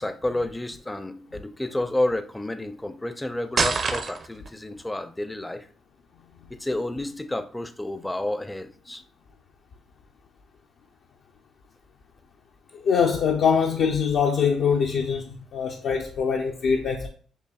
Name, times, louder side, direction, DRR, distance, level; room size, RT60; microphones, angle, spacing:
voice 1, 0.0-5.7 6.5-9.0, left 1 dB, 10° left, 0.4 m, -30 dB
sound 1, 3.6-4.5, right 5 dB, 50° right, 0.5 m, -25 dB
voice 2, 12.7-17.1, left 6 dB, 70° left, 0.5 m, -23 dB
6.7 x 2.7 x 2.3 m
cardioid pair, 90°, 0 cm